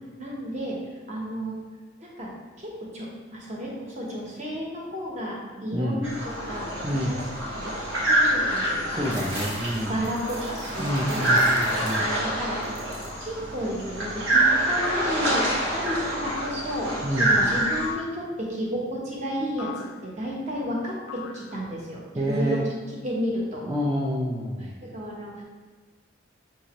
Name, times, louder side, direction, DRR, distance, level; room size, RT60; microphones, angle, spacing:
voice 1, 0.2-0.8 1.1-1.6 2.0-2.3 2.6-7.1 7.5-7.7 8.0-9.0 9.9-11.6 11.9-12.8 13.2-22.6 23.0-23.6 24.8-25.4, equal, 35° right, -4 dB, 0.9 m, -32 dB
sound 1, 6.0-17.9, right 1 dB, 85° right, 1.0 m, -26 dB
voice 2, 6.8-7.2 8.9-10.0 10.8-12.1 17.0-17.3 22.2-22.7 23.7-24.7, equal, 15° right, -5 dB, 0.3 m, -28 dB
sound 2, 9.0-12.3 12.6-13.2 13.7-14.4, right 2 dB, 60° right, 0.9 m, -43 dB
sound 3, 13.1-13.5 14.8-15.6 16.3-16.8 17.8-18.3 19.6-20.1 21.1-21.8, left 8 dB, 80° left, 0.4 m, -39 dB
5.7 x 2.6 x 2.9 m, 1.4 s
head